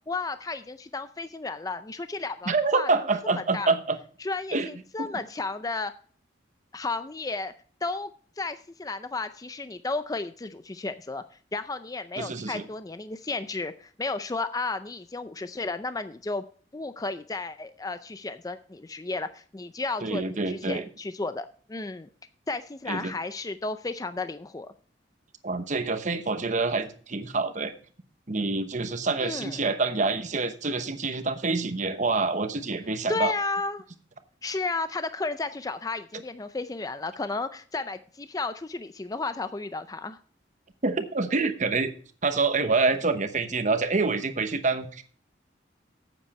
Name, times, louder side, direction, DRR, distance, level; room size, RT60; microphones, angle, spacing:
voice 1, 0.1-2.9 3.3-3.7 4.2-5.9 6.7-7.5 7.8-8.1 8.4-11.2 11.5-16.4 16.7-22.1 22.5-24.7 29.2-29.6 33.1-33.8 34.4-40.2, left 3 dB, 20° left, 11 dB, 0.5 m, -33 dB
voice 2, 2.5-4.0 4.5-4.7 5.0-5.1 12.2-12.7 20.0-20.8 22.9-23.1 25.4-27.7 28.3-33.3 40.8-41.9 42.2-45.0, right 3 dB, 40° right, 9 dB, 1.0 m, -26 dB
9.9 x 8.3 x 4.3 m, 0.43 s
head